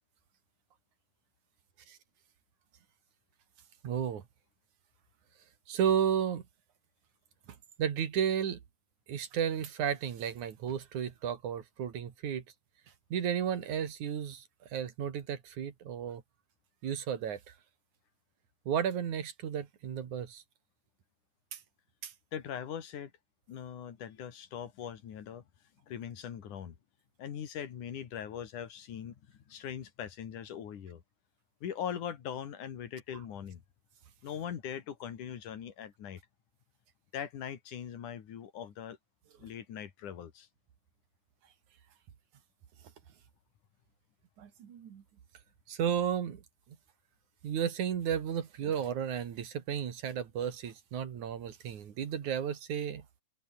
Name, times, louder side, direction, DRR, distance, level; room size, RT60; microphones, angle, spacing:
voice 1, 3.8-4.2 5.7-6.4 7.8-8.6 9.1-12.4 13.1-14.5 14.7-16.2 16.8-17.4 18.7-20.4 21.5-21.6 22.0-22.1 44.4-45.0 45.7-46.4 47.4-53.1, right 8 dB, 75° right, 3.6 m, -33 dB
voice 2, 22.3-23.1 23.5-25.4 25.9-26.8 27.2-29.2 29.5-31.0 31.6-33.6 34.2-36.2 37.1-39.0 39.4-40.5, left 9 dB, 80° left, 3.7 m, -41 dB
omnidirectional pair, 3.5 m